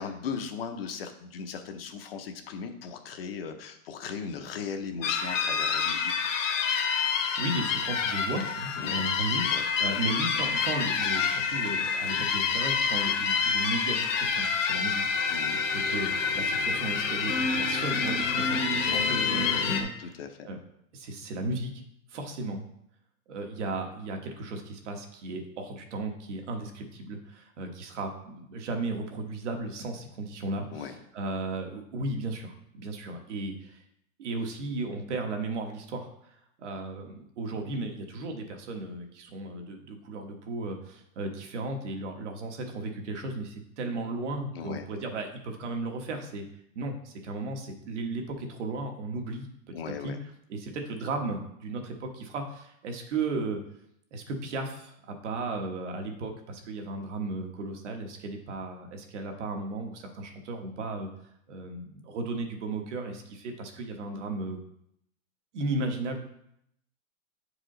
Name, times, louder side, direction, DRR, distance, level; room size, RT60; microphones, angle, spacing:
voice 1, 0.0-6.1 8.8-9.1 9.4-9.6 15.3-15.6 20.0-20.5 30.7-31.0 44.5-44.8 49.7-50.2, left 6 dB, 45° left, 6 dB, 0.7 m, -38 dB
sound 1, 5.0-19.8, left 5 dB, 65° left, 1.2 m, -27 dB
voice 2, 7.0-15.2 15.7-20.2 20.4-20.6 20.9-21.7 22.1-22.6 23.3-33.8 34.2-46.4 46.7-49.5 50.0-50.1 50.5-53.6 54.1-61.1 61.5-64.6 65.5-66.2, right 2 dB, 55° right, 4 dB, 1.3 m, -35 dB
8.7 x 4.9 x 3.8 m, 0.74 s
supercardioid pair, 180°, 41 cm